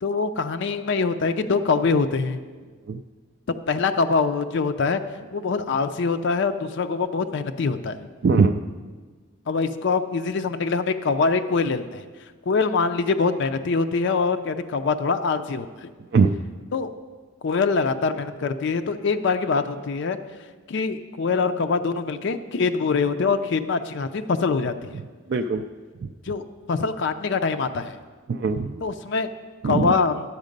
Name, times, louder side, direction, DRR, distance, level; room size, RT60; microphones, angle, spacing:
voice 1, 0.0-2.4 3.7-5.0 5.3-8.1 9.5-12.0 12.5-15.9 16.7-16.9 17.4-20.2 20.7-25.0 26.3-28.0 28.8-29.3 29.6-30.2, left 4 dB, 60° left, 8 dB, 0.4 m, -24 dB
voice 2, 8.2-8.6 16.1-16.4 25.3-25.6 26.0-26.1 28.3-28.9 29.6-29.9, right 4 dB, 55° right, 6 dB, 0.3 m, -21 dB
10.5 x 7.3 x 5.2 m, 1.4 s
head